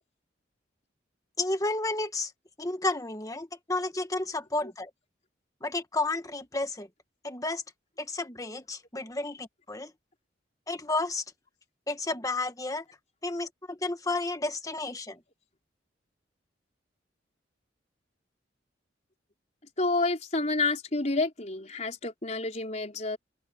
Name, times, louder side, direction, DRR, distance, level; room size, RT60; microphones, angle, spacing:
voice 1, 1.4-2.3 2.6-4.9 5.6-6.9 7.2-7.6 8.0-9.9 10.7-11.2 11.9-12.8 13.2-15.2, left 2 dB, 20° left, 1.5 m, -31 dB
voice 2, 19.8-23.2, left 3 dB, 40° left, 4.3 m, -29 dB
open air
head